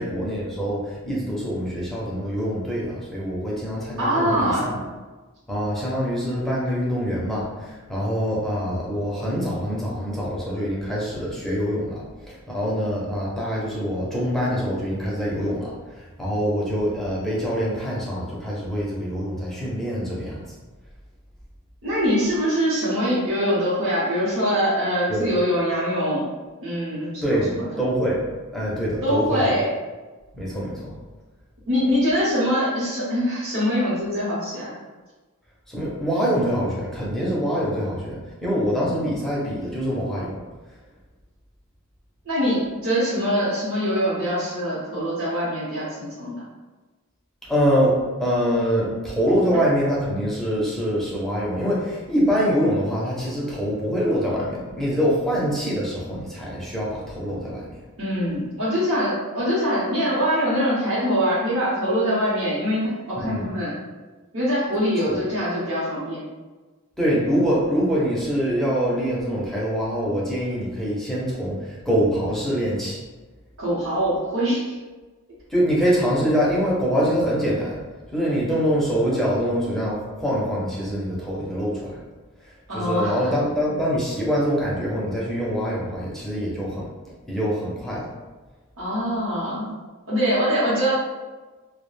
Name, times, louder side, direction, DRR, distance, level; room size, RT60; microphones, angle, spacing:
voice 1, 0.0-4.8 5.5-20.4 25.1-25.3 27.2-28.3 28.5-29.4 30.3-30.9 35.7-40.4 47.4-57.8 63.2-63.5 65.1-65.2 67.0-73.0 75.5-77.8 78.1-82.0 82.4-86.9 87.3-88.1, equal, ahead, -6 dB, 0.5 m, -24 dB
voice 2, 4.0-4.7 21.8-26.2 26.6-27.7 29.0-29.7 31.7-34.7 42.2-46.4 58.0-63.7 64.3-66.2 73.6-74.8 82.7-83.1 88.8-89.7 90.1-90.9, equal, 60° right, -9 dB, 0.8 m, -23 dB
2.3 x 2.1 x 3.1 m, 1.3 s
head